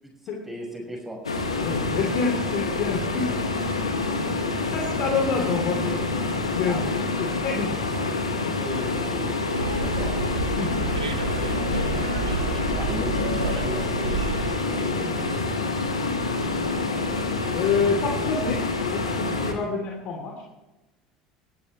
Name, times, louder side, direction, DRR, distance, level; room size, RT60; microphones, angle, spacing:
voice 1, 0.4-1.2 6.6-7.0 8.6-10.2 11.4-15.4, right 1 dB, 5° right, 0 dB, 6.0 m, -37 dB
sound 1, 1.2-19.5, left 3 dB, 85° left, 2.0 m, -27 dB
voice 2, 1.6-3.3 4.1-8.2 10.5-10.7 15.8-17.2 17.5-18.6 18.9-20.4, left 5 dB, 50° left, 1 dB, 3.3 m, -29 dB
Bus, 9.5-14.5, right 4 dB, 85° right, 1.2 m, -30 dB
22.0 x 14.0 x 3.3 m, 1.0 s
figure-of-eight pair, 70°, 3 cm